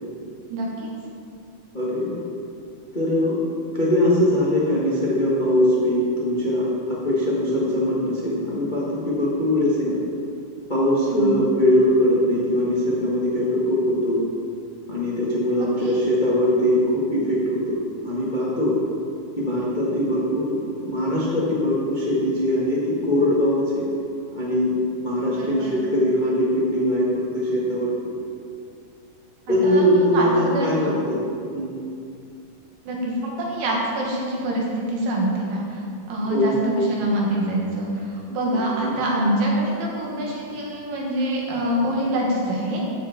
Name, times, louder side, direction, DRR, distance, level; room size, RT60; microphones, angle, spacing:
voice 1, 0.5-0.9 11.1-11.3 15.6-16.0 25.4-25.8 29.5-31.0 32.8-35.8 36.1-42.8, right 1 dB, 85° right, -3 dB, 3.3 m, -25 dB
voice 2, 1.7-2.2 2.9-3.4 3.7-10.0 10.7-14.2 14.9-18.8 19.4-23.8 24.3-24.7 25.0-27.9 29.5-31.2 31.5-31.8 36.3-36.5 38.5-38.9, left 1 dB, 75° left, -7 dB, 0.4 m, -21 dB
15.0 x 5.8 x 4.2 m, 2.5 s
omnidirectional pair, 3.9 m